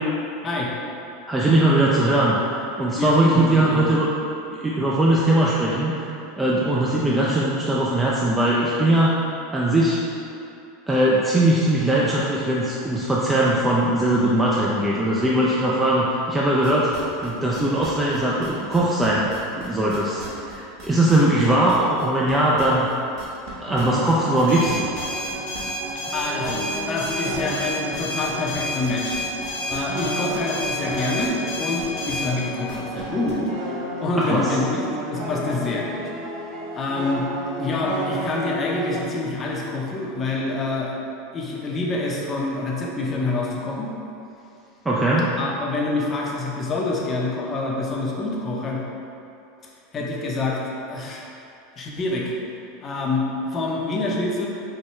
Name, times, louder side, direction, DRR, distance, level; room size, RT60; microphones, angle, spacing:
voice 1, 1.3-4.1 4.5-6.1 6.4-9.1 9.5-10.0 10.9-16.9 17.2-19.3 19.6-22.9 23.6-24.8 34.1-34.4 44.9-45.3, right 1 dB, 10° right, -6 dB, 0.4 m, -20 dB
voice 2, 3.0-3.9 26.1-29.2 29.7-34.8 35.1-36.1 36.7-37.3 37.6-41.0 41.3-43.9 45.4-48.8 49.9-50.6 50.9-51.2 51.8-52.3 52.8-54.5, left 3 dB, 30° left, -3 dB, 0.7 m, -26 dB
sound 1, 16.6-23.5 23.7-33.3, right 3 dB, 45° right, 1.0 m, -39 dB
sound 2, 23.7-39.1, right 2 dB, 65° right, 0.8 m, -32 dB
sound 3, 24.5-32.3, left 2 dB, 70° left, 0.9 m, -30 dB
4.5 x 2.2 x 3.1 m, 2.7 s
hypercardioid pair, 100°, 0 cm